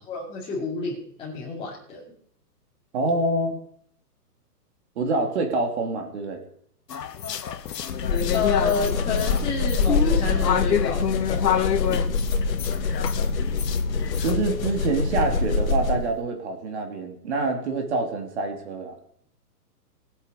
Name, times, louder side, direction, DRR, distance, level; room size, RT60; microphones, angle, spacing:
voice 1, 0.1-2.0 8.3-12.0, left 4 dB, 10° left, -7 dB, 2.5 m, -30 dB
voice 2, 2.9-3.6 5.0-6.4 14.2-18.9, right 3 dB, 45° right, 4 dB, 2.7 m, -26 dB
sound 1, 6.9-14.3, left 9 dB, 80° left, 1.4 m, -28 dB
sound 2, 7.9-16.2, left 4 dB, 55° left, 1.7 m, -25 dB
20.5 x 8.2 x 5.3 m, 0.64 s
hypercardioid pair, 165°, 48 cm